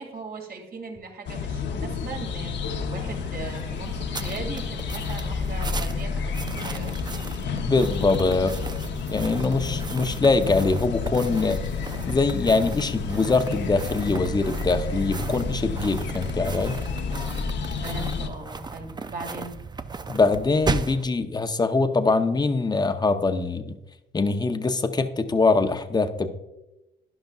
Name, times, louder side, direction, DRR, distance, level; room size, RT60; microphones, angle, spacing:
voice 1, 0.0-6.9 17.8-19.5, right 3 dB, 50° right, 2 dB, 2.5 m, -38 dB
sound 1, 1.3-18.3, left 5 dB, 65° left, 0.9 m, -30 dB
sound 2, 2.6-21.0, right 4 dB, 20° right, 0.5 m, -36 dB
voice 2, 7.6-8.5 9.1-11.6 12.1-16.8 20.1-23.8 24.1-26.3, left 3 dB, 20° left, 8 dB, 0.8 m, -23 dB
12.0 x 10.5 x 2.4 m, 0.97 s
cardioid pair, 90°, 20 cm